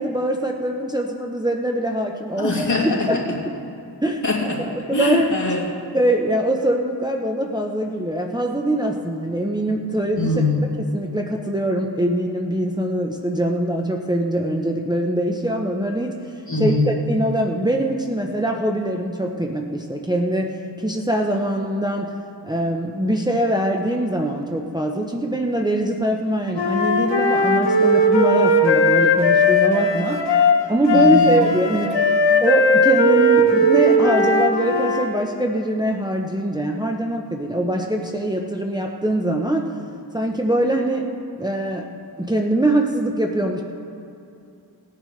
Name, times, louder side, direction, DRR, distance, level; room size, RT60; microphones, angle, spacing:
voice 1, 0.0-2.7 3.1-3.5 4.0-4.2 4.6-5.4 5.9-10.4 10.8-22.1 22.4-30.4 30.7-32.0 32.4-39.7 40.1-41.1 41.4-41.9 42.2-43.6, right 1 dB, 10° right, 1 dB, 1.0 m, -23 dB
voice 2, 2.4-3.2 4.2-4.6 4.9-5.6 10.2-10.7 16.5-16.9 30.9-31.5, left 2 dB, 45° left, -4 dB, 2.9 m, -22 dB
Wind instrument woodwind instrument, 26.5-35.1, left 1 dB, 90° left, 1.2 m, -17 dB
19.0 x 10.0 x 3.3 m, 2.6 s
cardioid pair, 55°, 41 cm